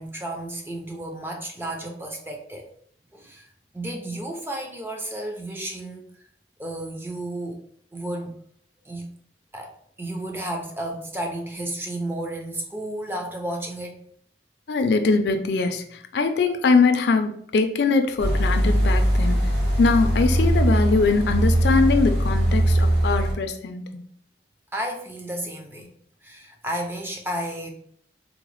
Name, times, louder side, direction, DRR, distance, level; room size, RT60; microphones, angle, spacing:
voice 1, 0.0-2.7 3.1-6.0 6.6-7.6 7.9-8.4 8.8-9.1 9.5-14.0 24.7-25.9 26.2-27.7, right 1 dB, 10° right, 2 dB, 0.4 m, -32 dB
voice 2, 14.7-15.8 16.1-19.4 19.8-24.0, left 4 dB, 65° left, 7 dB, 0.4 m, -22 dB
sound 1, 18.2-23.3, right 1 dB, 60° right, 1.1 m, -21 dB
3.8 x 2.1 x 3.0 m, 0.63 s
head